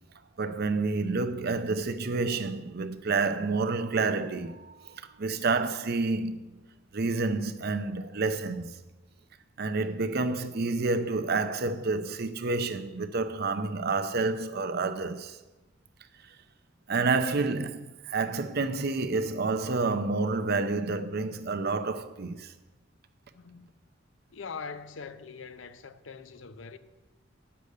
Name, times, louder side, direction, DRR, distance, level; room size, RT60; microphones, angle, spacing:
voice 1, 0.4-6.6 6.9-8.8 9.6-15.4 16.9-22.5, right 3 dB, 55° right, 0.7 m, -29 dB
voice 2, 23.3-23.7 24.3-26.8, left 5 dB, 70° left, 0.7 m, -42 dB
9.5 x 6.9 x 6.5 m
head